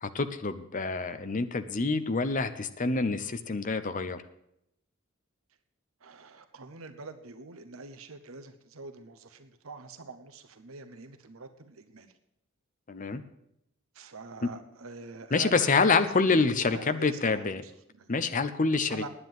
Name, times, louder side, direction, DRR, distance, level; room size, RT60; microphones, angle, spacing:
voice 1, 0.0-4.2 12.9-13.2 15.3-17.6 18.1-19.1, left 4 dB, 40° left, 10 dB, 0.8 m, -27 dB
voice 2, 6.0-12.1 13.9-18.1 18.9-19.1, right 3 dB, 90° right, 8 dB, 0.9 m, -45 dB
9.7 x 9.3 x 7.8 m, 0.79 s
head